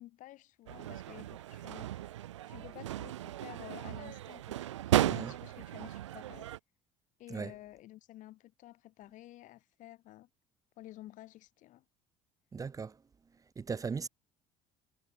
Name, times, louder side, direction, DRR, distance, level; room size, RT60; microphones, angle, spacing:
voice 1, 0.0-1.9 2.5-6.5 7.2-10.3 10.8-11.8, left 15 dB, 60° left, 1.5 m, -51 dB
sound 1, 0.7-6.6, right 13 dB, 85° right, 0.6 m, -35 dB
voice 2, 5.0-5.4 7.3-7.6 12.5-13.0 13.3-14.1, right 5 dB, 25° right, 0.5 m, -38 dB
hypercardioid pair, 60°, 15 cm